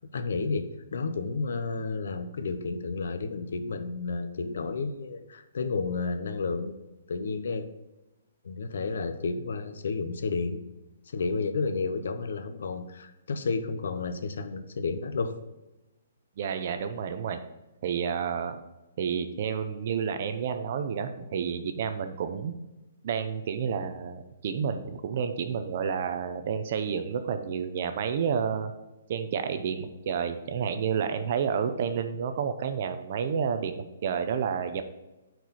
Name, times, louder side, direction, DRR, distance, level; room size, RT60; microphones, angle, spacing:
voice 1, 0.1-6.8 7.1-7.7 8.4-10.6 11.1-15.3, left 4 dB, 70° left, 9 dB, 0.9 m, -31 dB
voice 2, 16.4-17.4 17.8-18.6 19.0-22.6 23.0-28.7 29.1-34.8, right 7 dB, 40° right, 9 dB, 0.6 m, -30 dB
9.1 x 4.7 x 4.2 m, 1.0 s
hypercardioid pair, 175°, 0 cm